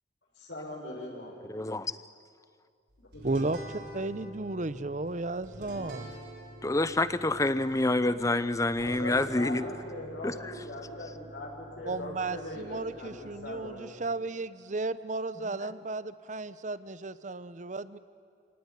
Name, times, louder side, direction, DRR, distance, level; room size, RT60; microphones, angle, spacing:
voice 1, 0.3-1.4 3.0-3.5 8.9-14.1, left 1 dB, 85° left, -2 dB, 6.4 m, -41 dB
voice 2, 1.5-1.9 6.6-9.6 10.2-10.5, left 2 dB, 20° left, 14 dB, 0.7 m, -27 dB
sound 1, 3.1-13.8, right 1 dB, 65° right, 6.9 m, -47 dB
voice 3, 3.2-3.6 3.9-6.1 11.9-18.0, right 3 dB, 45° right, 15 dB, 0.8 m, -34 dB
28.0 x 18.5 x 9.9 m, 2.3 s
head